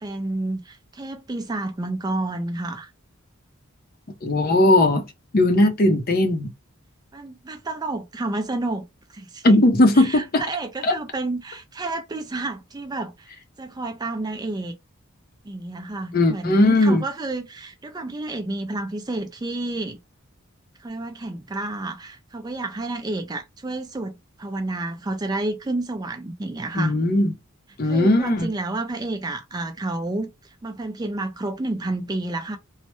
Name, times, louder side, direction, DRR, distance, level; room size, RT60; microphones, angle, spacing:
voice 1, 0.0-2.9 7.1-9.6 9.9-13.3 13.6-14.7 15.4-20.0 20.8-27.0 27.8-32.6, right 2 dB, 20° right, 0.4 m, -30 dB
voice 2, 4.2-5.0 5.3-6.5 9.4-10.4 10.9-11.0 16.1-17.0 26.8-27.3 27.8-28.5, left 1 dB, 45° left, 0.6 m, -18 dB
3.2 x 2.0 x 3.0 m
head